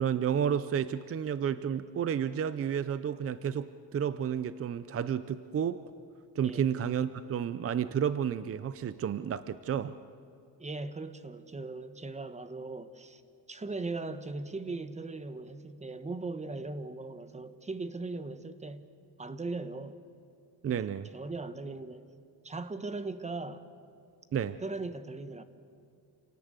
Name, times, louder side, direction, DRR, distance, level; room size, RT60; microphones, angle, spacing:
voice 1, 0.0-5.8 6.4-10.0 20.6-21.1 24.3-24.6, right 8 dB, 35° right, 0.5 m, -31 dB
voice 2, 10.6-13.2 13.5-18.9 19.2-20.0 20.7-22.0 22.4-23.6 24.6-25.4, right 3 dB, 20° right, 1.0 m, -39 dB
28.0 x 18.0 x 8.2 m
cardioid pair, 145°, 38 cm